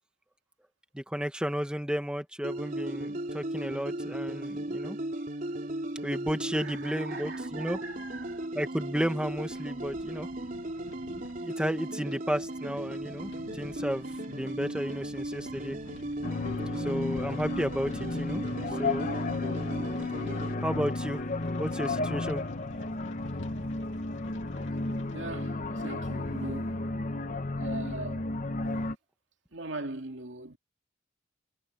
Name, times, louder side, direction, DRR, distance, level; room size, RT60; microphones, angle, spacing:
voice 1, 0.9-5.0 6.0-7.8 8.5-10.3 11.4-15.8 16.8-18.4 18.8-19.1 20.6-21.2 21.6-22.4, equal, 5° right, 1.5 m, -33 dB
sound 1, 2.4-20.5, right 1 dB, 45° right, 3.5 m, -37 dB
sound 2, 5.9-25.2, left 2 dB, 65° left, 2.4 m, -50 dB
voice 2, 6.5-8.4 25.1-26.8 27.6-28.2 29.5-30.6, right 2 dB, 65° right, 2.7 m, -40 dB
sound 3, 16.2-29.0, left 2 dB, 40° left, 1.0 m, -33 dB
head